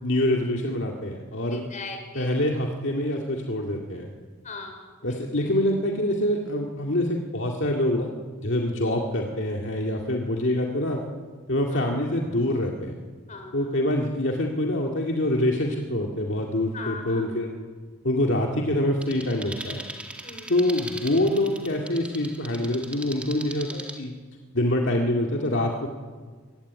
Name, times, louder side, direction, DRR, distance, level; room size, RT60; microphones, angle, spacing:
voice 1, 0.0-1.6 2.2-4.1 5.0-8.1 8.4-11.0 11.5-12.9 13.5-17.5 18.0-19.8 20.5-24.1 24.5-25.9, left 1 dB, 60° left, 1 dB, 2.1 m, -25 dB
voice 2, 1.5-2.4 4.4-5.2 8.7-8.9 11.7-11.9 13.3-13.8 16.7-17.4 20.2-20.6, left 3 dB, 35° left, 5 dB, 4.7 m, -40 dB
sound 1, 19.0-24.0, right 1 dB, 5° right, 2.1 m, -39 dB
24.0 x 16.0 x 9.6 m, 1.5 s
head